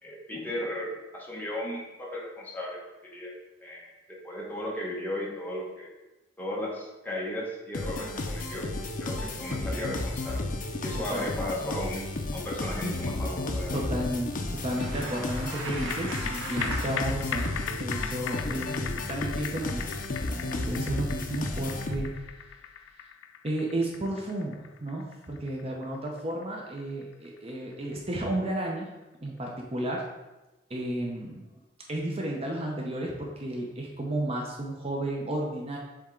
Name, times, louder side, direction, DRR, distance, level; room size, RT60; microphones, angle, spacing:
voice 1, 0.0-3.3 3.6-5.9 6.4-8.7 9.0-10.5 10.8-13.9, left 1 dB, 10° left, -4 dB, 1.2 m, -35 dB
sound 1, 7.7-22.3, left 2 dB, 45° left, 0.6 m, -33 dB
voice 2, 10.9-11.3 13.7-19.9 20.3-22.1 23.4-28.9 29.2-30.1 30.7-31.4 31.9-35.8, right 1 dB, 30° right, -1 dB, 0.7 m, -32 dB
Bicycle, 14.5-17.7, right 2 dB, 70° right, 1.2 m, -39 dB
sound 2, 15.7-28.3 28.7-28.8, left 9 dB, 85° left, 0.3 m, -39 dB
7.3 x 3.6 x 3.8 m, 1.1 s
head